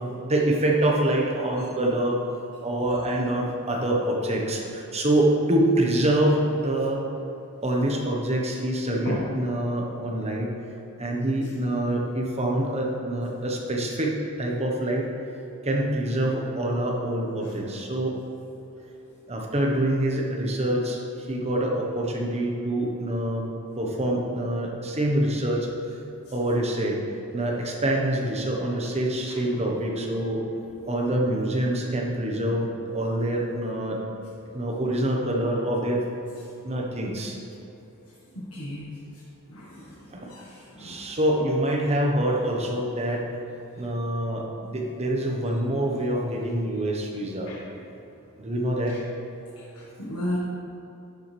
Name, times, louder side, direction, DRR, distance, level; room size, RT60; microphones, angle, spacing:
voice 1, 0.0-2.2 2.6-7.0 7.6-10.5 11.0-15.1 15.6-18.2 19.3-21.0 21.3-23.5 23.8-25.7 26.3-27.0 27.3-30.4 30.9-34.0 34.5-36.0 36.6-37.4 40.1-40.3 40.8-43.3 43.8-47.5 48.4-49.0, right 1 dB, 30° right, -1 dB, 1.2 m, -25 dB
voice 2, 38.3-38.8 39.5-39.9 40.3-41.0 47.5-47.6 50.0-50.4, left 1 dB, 75° left, -6 dB, 1.5 m, -33 dB
11.5 x 7.0 x 3.4 m, 2.9 s
head